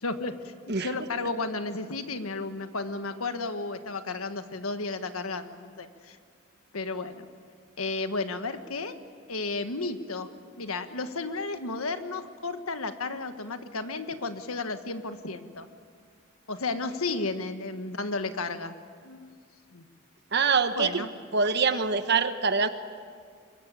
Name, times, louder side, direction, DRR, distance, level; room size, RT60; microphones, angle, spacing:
voice 1, 0.0-0.5 0.8-6.2 6.7-7.2 7.8-9.0 9.3-10.3 10.6-15.7 16.5-18.7 19.0-19.4 19.7-19.8 20.7-21.1, left 3 dB, 90° left, 8 dB, 1.6 m, -33 dB
voice 2, 0.7-1.3 20.3-21.0 21.3-22.7, right 5 dB, 55° right, 9 dB, 1.1 m, -25 dB
25.0 x 22.5 x 8.4 m, 2.1 s
head